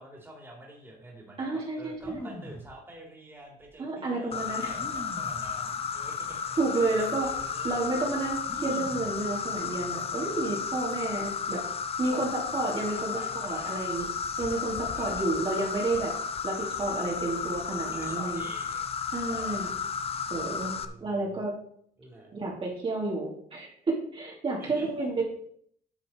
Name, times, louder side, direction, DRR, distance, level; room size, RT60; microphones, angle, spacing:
voice 1, 0.0-6.4 6.7-6.9 7.2-7.9 12.9-13.8 14.4-15.1 17.9-19.7 20.1-20.5 20.8-21.4 22.0-22.3 24.6-25.2, right 1 dB, 15° right, -1 dB, 3.4 m, -49 dB
voice 2, 1.4-2.3 3.8-4.7 6.6-7.3 7.6-11.6 12.0-14.0 14.4-16.1 16.4-18.5 19.1-19.7 20.3-20.7 21.0-21.5 22.3-25.2, right 3 dB, 35° right, -4 dB, 2.9 m, -31 dB
sound 1, 1.9-2.7 3.6-3.7 4.7-5.5 6.3-6.4 6.8-7.3 8.4-9.2 9.5-10.0, left 1 dB, 10° left, 2.5 m, -43 dB
Insect, 4.3-20.9, left 6 dB, 35° left, 0.8 m, -33 dB
10.0 x 6.4 x 4.6 m, 0.63 s
cardioid pair, 110°, 17 cm